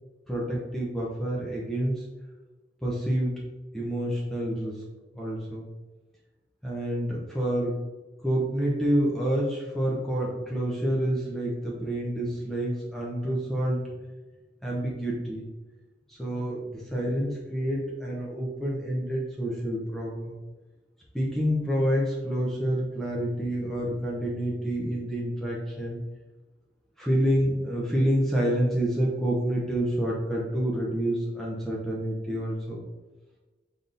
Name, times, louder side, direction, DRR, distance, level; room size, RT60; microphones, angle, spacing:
voice 1, 0.3-2.0 2.8-3.4 3.7-4.8 5.2-5.7 6.6-7.7 8.2-13.9 14.6-15.5 16.1-20.4 21.1-26.0 27.0-32.8, equal, ahead, -5 dB, 0.6 m, -28 dB
4.0 x 3.4 x 2.5 m, 1.2 s
head